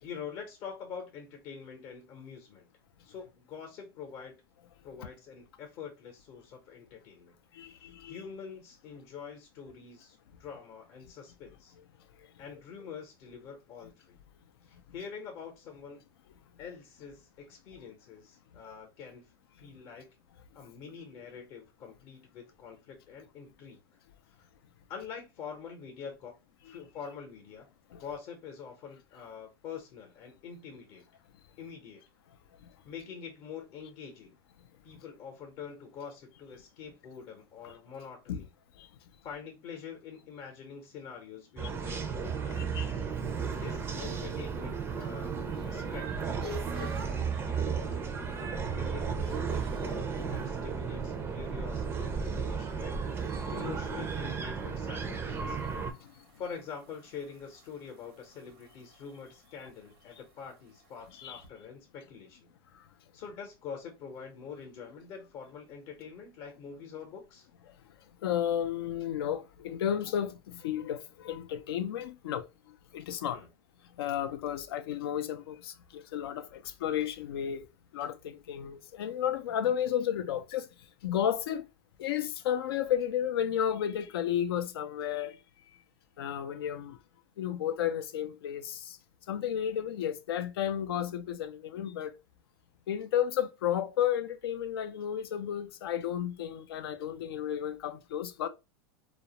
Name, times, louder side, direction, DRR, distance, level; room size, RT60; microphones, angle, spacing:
voice 1, 0.0-2.7 3.0-4.4 4.8-7.4 7.6-11.7 12.4-14.2 14.6-16.0 16.6-19.3 19.6-20.1 20.5-23.8 24.3-24.5 24.9-26.4 26.6-27.7 28.0-31.0 31.6-32.0 32.8-34.4 34.8-38.5 39.2-42.8 43.6-45.4 45.6-55.6 56.4-62.5 63.1-67.5 73.3-73.5, left 6 dB, 45° left, 0.7 m, -45 dB
voice 2, 7.5-8.2 26.7-26.8 27.9-28.0 38.3-38.4 38.8-38.9 41.9-42.0 42.6-43.1 53.3-53.5 56.0-56.1 61.2-61.4 68.2-72.5 72.9-73.4 74.0-77.7 77.9-80.7 81.0-81.6 82.0-85.4 86.2-87.0 87.4-89.0 89.3-92.1 92.9-98.5, left 10 dB, 85° left, 0.4 m, -32 dB
sound 1, 41.6-55.9, right 6 dB, 20° right, 0.4 m, -34 dB
sound 2, 43.2-47.3 47.8-48.2 48.5-50.6 53.1-61.5, right 1 dB, 90° right, 0.7 m, -50 dB
2.3 x 2.0 x 2.8 m
supercardioid pair, 120°, 12 cm